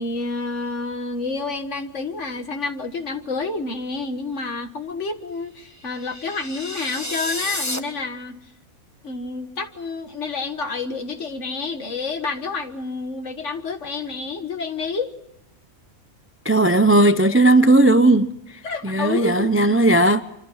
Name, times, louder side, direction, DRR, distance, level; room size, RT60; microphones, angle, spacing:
voice 1, 0.0-8.4 9.0-15.1 18.6-19.5, left 3 dB, 55° left, 1.9 m, -29 dB
sound 1, 5.8-7.8, left 1 dB, 10° left, 1.3 m, -30 dB
voice 2, 16.4-18.3 18.8-20.2, right 2 dB, 15° right, 0.5 m, -16 dB
26.0 x 26.0 x 5.7 m
omnidirectional pair, 1.5 m